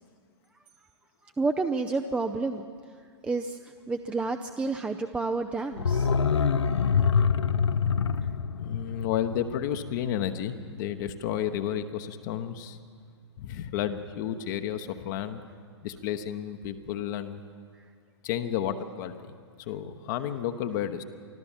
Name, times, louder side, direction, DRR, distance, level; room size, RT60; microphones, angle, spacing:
voice 1, 1.2-2.6 3.0-6.1 7.0-7.1 17.8-17.9, right 3 dB, 10° right, 7 dB, 0.6 m, -30 dB
sound 1, 5.7-10.5 10.8-10.9, left 6 dB, 75° left, 0.8 m, -26 dB
voice 2, 8.6-12.8 13.4-15.4 15.8-17.4 18.2-19.1 19.6-21.0, left 10 dB, 40° left, 7 dB, 1.1 m, -31 dB
25.0 x 14.5 x 7.3 m, 2.1 s
figure-of-eight pair, 115°, 15 cm